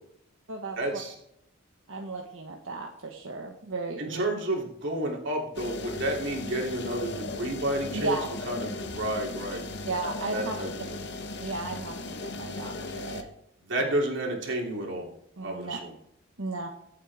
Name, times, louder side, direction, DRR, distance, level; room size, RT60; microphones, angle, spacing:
voice 1, 0.8-1.1 4.0-8.2 8.4-9.6 10.3-11.0 13.7-15.1 15.4-15.9, right 1 dB, 60° right, -1 dB, 3.2 m, -31 dB
voice 2, 1.9-4.2 7.9-8.2 9.9-10.6 11.4-13.2 13.8-13.9 15.4-15.8 16.4-16.7, right 3 dB, 80° right, 1 dB, 1.4 m, -34 dB
sound 1, 5.5-13.2, left 2 dB, 55° left, 1.4 m, -37 dB
24.0 x 8.4 x 3.6 m, 0.75 s
head